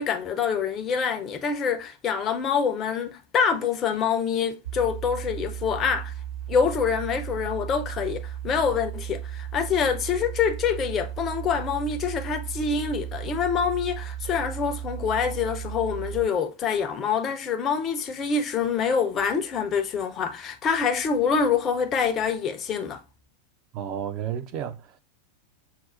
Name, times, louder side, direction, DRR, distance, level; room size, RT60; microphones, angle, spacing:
voice 1, 0.0-6.1 6.5-23.0, left 6 dB, 30° left, 0.5 m, -26 dB
sound 1, 4.7-16.3, right 11 dB, 70° right, 0.8 m, -35 dB
voice 2, 23.7-25.0, right 9 dB, 40° right, 0.5 m, -32 dB
5.7 x 2.0 x 2.5 m
figure-of-eight pair, 90°, 0 cm